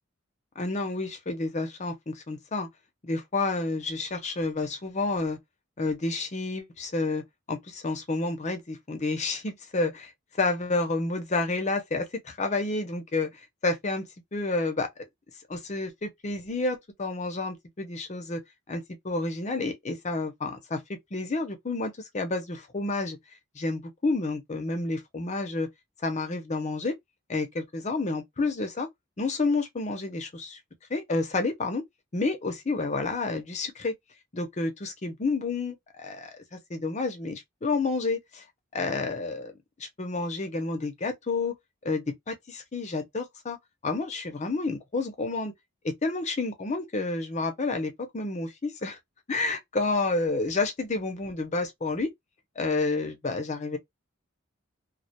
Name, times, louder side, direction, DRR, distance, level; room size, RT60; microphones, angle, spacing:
voice 1, 0.6-2.7 3.0-5.4 5.8-7.2 7.5-10.1 10.4-13.3 13.6-14.0 14.3-14.9 15.5-18.4 18.7-20.8 21.1-23.2 23.6-25.7 26.0-27.0 27.3-28.9 29.2-30.6 30.9-31.8 32.1-33.9 34.3-38.4 38.7-39.5 39.8-41.6 41.8-43.6 43.8-45.5 45.8-49.0 49.3-52.1 52.6-53.8, left 3 dB, 35° left, 0.6 m, -30 dB
2.3 x 2.2 x 2.7 m
head